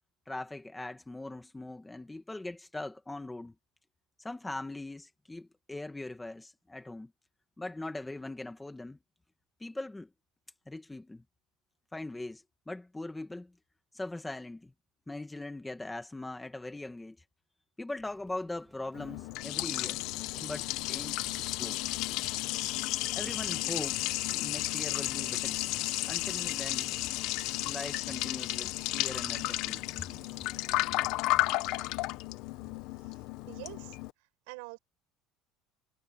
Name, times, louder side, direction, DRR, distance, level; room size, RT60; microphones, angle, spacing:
voice 1, 0.3-3.5 4.2-7.1 7.6-9.0 9.6-10.1 10.7-11.2 11.9-13.5 13.9-14.7 15.1-17.2 17.8-20.0 20.4-21.8 23.1-25.6 26.0-26.9 27.6-30.1, left 2 dB, 5° left, 1.6 m, -41 dB
sound 1, 17.9-33.4, right 4 dB, 10° right, 2.1 m, -59 dB
Liquid, 18.9-34.1, left 18 dB, 55° left, 0.8 m, -33 dB
voice 2, 33.5-34.0 34.5-34.8, right 30 dB, 90° right, 7.0 m, -45 dB
cardioid pair, 175°, 0 cm